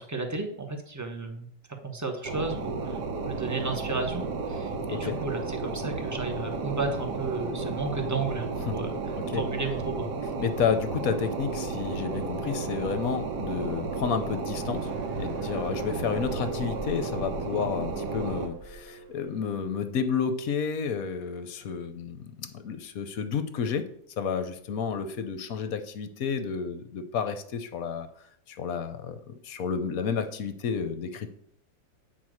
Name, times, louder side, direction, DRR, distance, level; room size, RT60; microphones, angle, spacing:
voice 1, 0.0-1.5 1.8-3.0 3.2-8.9 9.3-10.1, right 3 dB, 15° right, 4 dB, 0.5 m, -33 dB
sound 1, 2.2-18.5, right 4 dB, 65° right, 1.6 m, -33 dB
voice 2, 10.4-14.9 15.2-23.8 24.2-28.1 28.5-31.3, left 6 dB, 60° left, 9 dB, 1.0 m, -31 dB
sound 2, 14.6-19.9, right 3 dB, 40° right, 1.0 m, -44 dB
9.1 x 4.4 x 6.3 m, 0.67 s
omnidirectional pair, 2.1 m